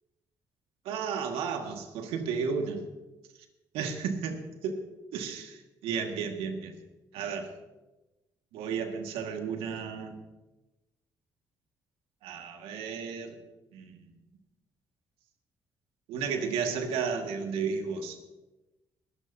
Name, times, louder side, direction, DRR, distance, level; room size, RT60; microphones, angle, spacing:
voice 1, 0.9-2.9 3.7-4.8 5.1-6.7 7.1-7.5 8.5-10.2 12.2-13.4 13.7-14.0 16.1-18.2, right 6 dB, 80° right, 4 dB, 1.8 m, -33 dB
21.5 x 12.5 x 2.8 m, 1.1 s
hypercardioid pair, 55°, 9 cm